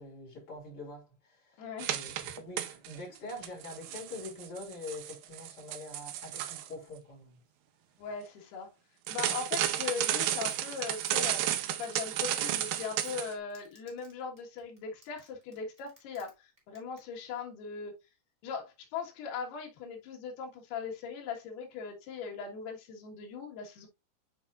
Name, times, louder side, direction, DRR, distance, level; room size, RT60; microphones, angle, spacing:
voice 1, 0.0-7.4, left 2 dB, 30° left, 4.1 m, -45 dB
voice 2, 1.6-2.3 8.0-8.7 9.1-17.9 18.4-23.9, left 6 dB, 70° left, 3.4 m, -40 dB
sound 1, 1.8-3.0 3.3-6.7 9.1-13.3, right 12 dB, 85° right, 2.0 m, -33 dB
Domestic sounds home sounds, 10.0-16.3 16.6-17.0 17.3-17.4, right 1 dB, 10° right, 2.6 m, -58 dB
9.1 x 5.0 x 2.4 m
omnidirectional pair, 5.0 m